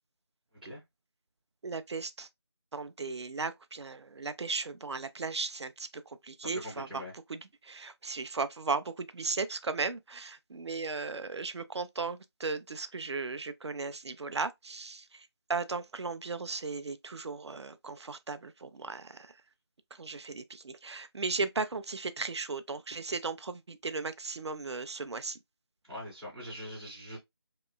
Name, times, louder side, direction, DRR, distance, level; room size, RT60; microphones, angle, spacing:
voice 1, 1.6-2.3 2.7-7.0 7.3-19.3 20.0-25.4, right 4 dB, 80° right, 0.4 m, -36 dB
voice 2, 6.4-7.1 25.8-27.2, left 1 dB, ahead, 0.5 m, -42 dB
2.9 x 2.3 x 2.2 m
figure-of-eight pair, 165°, 14 cm